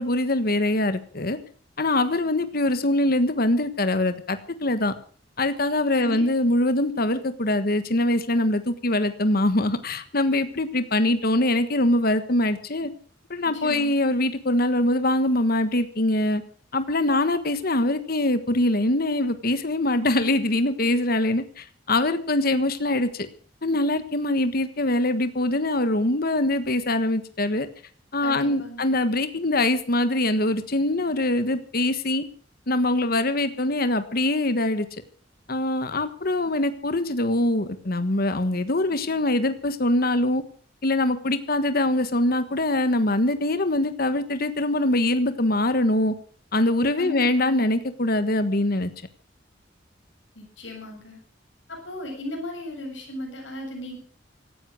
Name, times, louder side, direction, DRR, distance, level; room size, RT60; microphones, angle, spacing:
voice 1, 0.0-1.4 1.8-4.9 5.4-12.9 13.3-16.4 16.7-23.3 23.6-27.7 28.1-32.2 32.7-34.9 35.5-40.4 40.8-46.1 46.5-48.9, left 1 dB, 55° left, 11 dB, 1.4 m, -23 dB
voice 2, 5.9-6.2 13.4-14.0 28.2-28.9 47.0-47.8 50.3-51.2 51.7-54.0, left 1 dB, 80° left, 1 dB, 7.7 m, -36 dB
16.5 x 13.0 x 6.3 m, 0.44 s
head